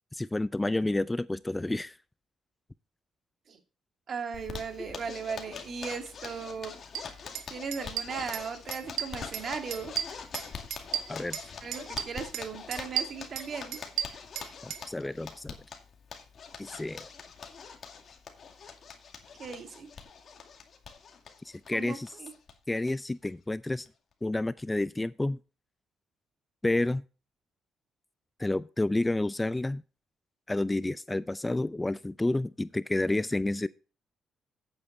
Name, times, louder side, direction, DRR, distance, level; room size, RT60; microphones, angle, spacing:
voice 1, 0.1-2.0 4.8-4.9 11.1-11.4 14.6-15.6 16.6-17.1 21.4-22.2 22.7-23.9 24.2-25.4 26.6-27.0 28.4-29.8 30.5-33.7, left 2 dB, 15° left, 0.4 m, -30 dB
voice 2, 4.1-6.7 7.5-9.9 11.6-13.8 19.4-19.9 21.7-22.3, right 5 dB, 50° right, 2.3 m, -37 dB
Zipper (clothing), 4.3-22.5 22.8-22.9 23.2-23.3 23.7-24.1, left 6 dB, 50° left, 2.3 m, -44 dB
sound 1, 6.9-7.0 7.3-7.5 7.7-8.5 8.7-9.4 9.7-11.5 11.7-12.4 12.7-14.8, right 10 dB, 90° right, 1.0 m, -33 dB
9.2 x 8.8 x 4.2 m
cardioid pair, 90°, 0 cm